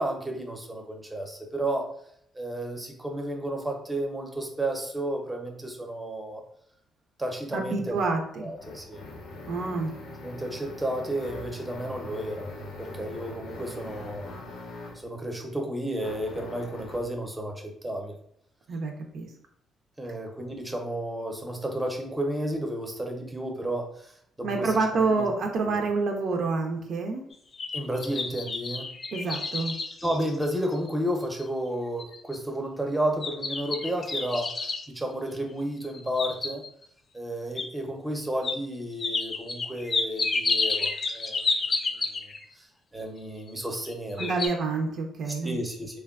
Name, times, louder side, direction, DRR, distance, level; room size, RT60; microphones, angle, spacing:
voice 1, 0.0-1.9 2.3-6.4 7.2-8.0 8.4-9.0 10.2-12.5 12.8-14.3 15.0-18.1 20.0-24.7 25.1-25.3 25.6-25.8 27.7-28.9 30.0-36.6 37.1-41.4 41.8-41.9 42.2-42.7 42.9-44.3 45.3-46.0, right 1 dB, 10° right, 2 dB, 0.6 m, -32 dB
voice 2, 7.5-8.5 9.5-9.9 18.7-19.3 24.4-27.3 29.1-29.7 44.2-45.6, right 3 dB, 65° right, 3 dB, 0.4 m, -28 dB
sound 1, 7.9-15.1 16.0-17.1, left 2 dB, 90° left, 0.6 m, -42 dB
sound 2, 27.3-30.9 31.4-31.5 32.0-32.4 33.2-34.9 35.8-36.8 37.6-37.7 38.4-38.6 39.0-42.4 43.5-43.9 44.2-44.5, left 3 dB, 40° left, 0.3 m, -30 dB
3.2 x 2.2 x 2.3 m, 0.68 s
cardioid pair, 90°, 0 cm